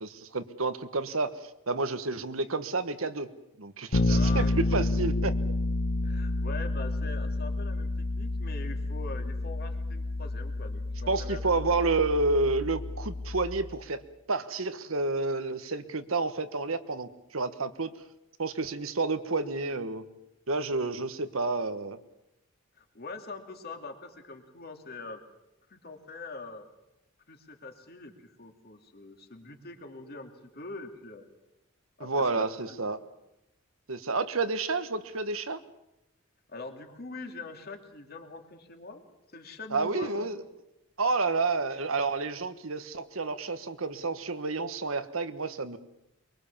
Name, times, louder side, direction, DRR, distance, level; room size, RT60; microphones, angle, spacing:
voice 1, 0.0-1.3 1.7-3.3 3.6-5.3 11.1-14.0 14.3-17.9 18.4-20.0 20.5-22.0 32.0-33.0 33.9-35.6 39.7-40.4 41.0-45.8, right 3 dB, 90° right, 10 dB, 1.4 m, -30 dB
Bass guitar, 3.9-13.7, left 2 dB, 80° left, 1.4 m, -30 dB
voice 2, 4.0-4.8 6.0-11.8 22.7-25.2 25.7-26.6 27.3-31.2 32.0-32.9 36.5-39.0 39.3-40.2, left 3 dB, 50° left, 5 dB, 2.5 m, -43 dB
23.5 x 23.0 x 7.3 m, 0.90 s
head